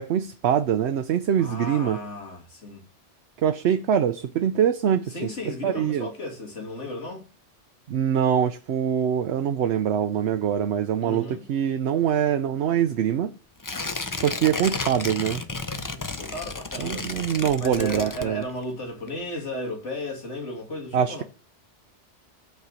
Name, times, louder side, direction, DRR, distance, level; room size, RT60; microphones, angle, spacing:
voice 1, 0.0-2.0 3.4-5.1 5.6-6.1 7.9-13.3 14.2-15.4 16.8-18.4 20.9-21.2, right 9 dB, 70° right, 0.9 m, -24 dB
voice 2, 1.4-2.8 5.1-7.2 11.0-11.4 15.9-17.1 17.6-21.2, left 1 dB, 85° left, 2.7 m, -34 dB
Tearing, 13.6-18.7 19.1-19.2, left 3 dB, 25° left, 0.5 m, -32 dB
8.3 x 4.5 x 6.4 m
omnidirectional pair, 1.2 m